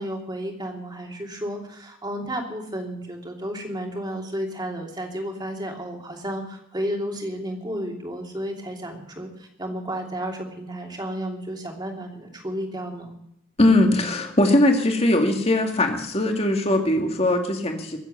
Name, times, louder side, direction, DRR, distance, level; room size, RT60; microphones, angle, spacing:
voice 1, 0.0-13.2, equal, 20° right, 2 dB, 2.9 m, -32 dB
voice 2, 13.6-18.0, left 1 dB, 30° left, 3 dB, 2.2 m, -20 dB
22.5 x 8.1 x 6.8 m, 0.75 s
head